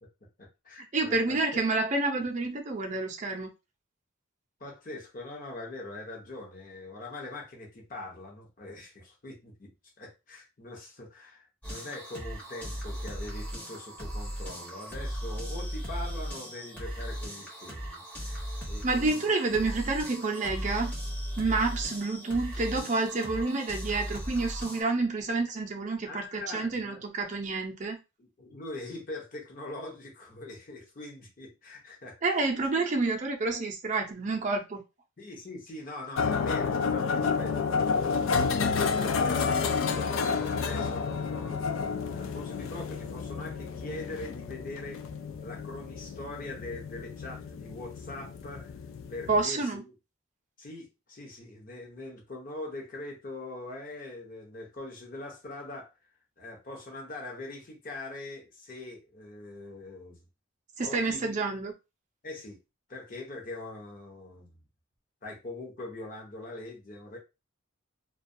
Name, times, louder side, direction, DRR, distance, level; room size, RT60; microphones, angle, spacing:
voice 1, 0.4-1.6 4.6-9.7 10.0-18.4 18.6-19.3 26.0-27.0 28.2-32.5 35.2-45.0 45.4-48.7 49.1-49.9 50.6-55.9 56.4-60.2 60.8-61.5 62.2-62.6 62.9-64.6 65.2-67.2, left 2 dB, 40° left, 0.7 m, -42 dB
voice 2, 0.9-3.5 18.8-20.9 21.4-28.0 32.2-34.8 49.3-49.8 60.8-61.7, right 3 dB, 35° right, 0.5 m, -29 dB
sound 1, 11.6-24.8, equal, 10° left, 0.7 m, -37 dB
sound 2, 36.2-49.4, left 5 dB, 75° left, 0.3 m, -30 dB
2.3 x 2.2 x 2.6 m
head